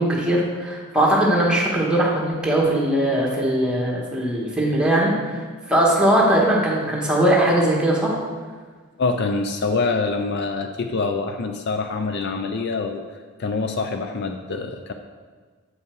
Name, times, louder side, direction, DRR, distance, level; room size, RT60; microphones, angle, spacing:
voice 1, 0.0-5.4 5.7-8.2, right 1 dB, 5° right, -4 dB, 1.4 m, -20 dB
voice 2, 9.0-13.0 13.4-14.9, left 4 dB, 50° left, 6 dB, 0.4 m, -25 dB
7.9 x 5.6 x 4.5 m, 1.5 s
head